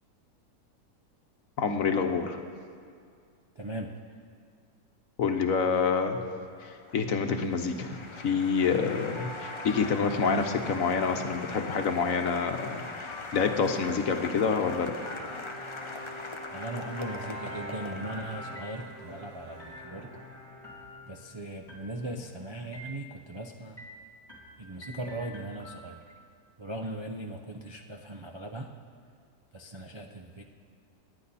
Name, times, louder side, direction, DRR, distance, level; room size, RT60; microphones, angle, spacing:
voice 1, 1.6-2.4 5.2-6.2 6.6-15.0, left 5 dB, 60° left, 6 dB, 1.3 m, -27 dB
voice 2, 3.6-3.9 16.5-20.1 21.0-23.8 24.6-26.0 26.6-28.7 29.5-30.4, right 1 dB, 40° right, 1 dB, 0.4 m, -39 dB
Applause, 6.6-19.0, left 3 dB, 30° left, 0.6 m, -42 dB
sound 1, 9.2-11.9 13.1-16.1 17.0-19.2 19.6-20.2 20.6-21.3 21.7-22.3 22.7-23.4 23.8-26.2, left 1 dB, 15° left, 2.9 m, -49 dB
Bowed string instrument, 15.0-21.7, equal, 70° right, 2.8 m, -44 dB
27.0 x 10.0 x 4.2 m, 2.2 s
omnidirectional pair, 1.7 m